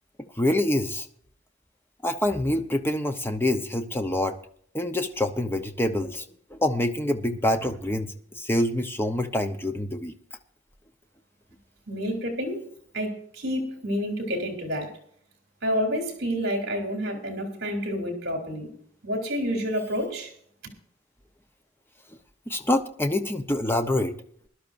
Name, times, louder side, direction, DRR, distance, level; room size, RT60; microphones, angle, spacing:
voice 1, 0.4-1.1 2.0-4.4 4.7-6.2 6.5-10.1 22.5-24.1, left 1 dB, 10° left, 0.8 m, -26 dB
voice 2, 11.9-12.7 12.9-15.0 15.6-18.8 19.0-20.3, equal, 55° right, 3.1 m, -29 dB
20.5 x 11.5 x 2.6 m
head